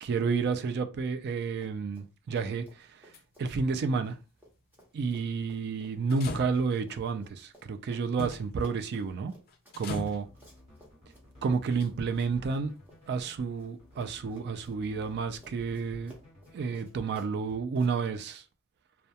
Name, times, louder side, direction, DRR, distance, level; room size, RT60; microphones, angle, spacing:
voice 1, 0.0-3.1 3.4-4.2 4.9-9.3 9.8-10.3 11.4-12.7 13.1-16.2 16.5-18.4, right 5 dB, 50° right, 0.3 m, -30 dB
Run, 1.5-2.1 2.3-13.7 14.0-17.9, equal, 10° right, 0.8 m, -57 dB
sound 1, 2.8-3.2 6.1-6.9 8.2-8.5 8.9-9.2 9.5-10.3 11.7-12.2 13.2-13.3, left 3 dB, 45° left, 0.4 m, -40 dB
sound 2, 10.2-17.2, left 1 dB, 35° right, 1.2 m, -55 dB
2.2 x 2.2 x 2.7 m
head